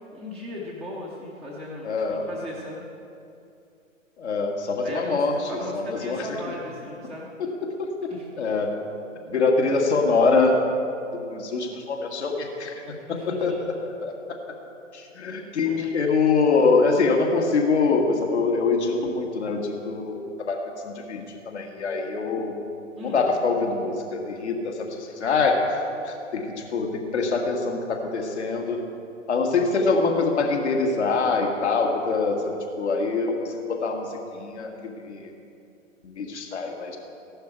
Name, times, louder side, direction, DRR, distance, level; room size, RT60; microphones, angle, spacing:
voice 1, 0.1-2.8 4.8-7.3 8.1-8.2 13.1-13.6 15.6-15.9 23.0-23.3, left 1 dB, ahead, -7 dB, 0.7 m, -37 dB
voice 2, 1.8-2.3 4.2-6.3 7.6-7.9 8.4-8.7 9.3-10.6 11.2-14.1 14.9-22.5 23.0-25.6 26.0-28.8 29.3-34.1 34.3-35.3 36.0-37.0, left 4 dB, 60° left, 2 dB, 2.0 m, -24 dB
15.0 x 11.0 x 4.6 m, 2.6 s
figure-of-eight pair, 120°, 39 cm